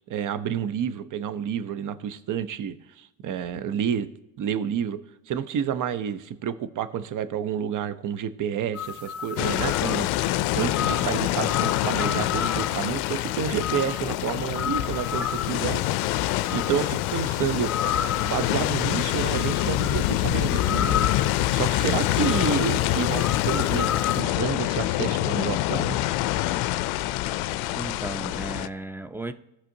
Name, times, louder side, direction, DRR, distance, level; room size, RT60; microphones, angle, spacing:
voice 1, 0.1-4.1 4.4-5.0 5.3-15.8 16.3-17.7 18.2-21.1 21.5-26.0, right 8 dB, 50° right, 0.8 m, -29 dB
sound 1, 8.7-24.2, left 7 dB, 35° left, 0.9 m, -33 dB
sound 2, 9.4-28.7, left 15 dB, 70° left, 0.5 m, -26 dB
voice 2, 27.7-29.3, right 2 dB, 5° right, 0.6 m, -35 dB
16.5 x 5.7 x 2.7 m
hypercardioid pair, 60°, 40 cm